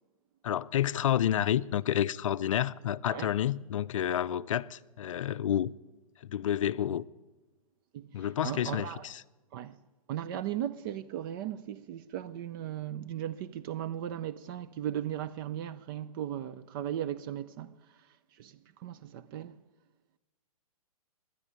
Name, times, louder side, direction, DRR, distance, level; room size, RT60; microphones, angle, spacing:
voice 1, 0.4-5.7 6.2-7.0 8.1-9.2, left 11 dB, 60° left, 0.5 m, -29 dB
voice 2, 7.9-9.1 9.5-9.8 10.1-18.0 18.3-19.6, right 11 dB, 35° right, 0.5 m, -37 dB
12.0 x 9.7 x 9.3 m
figure-of-eight pair, 120°, 19 cm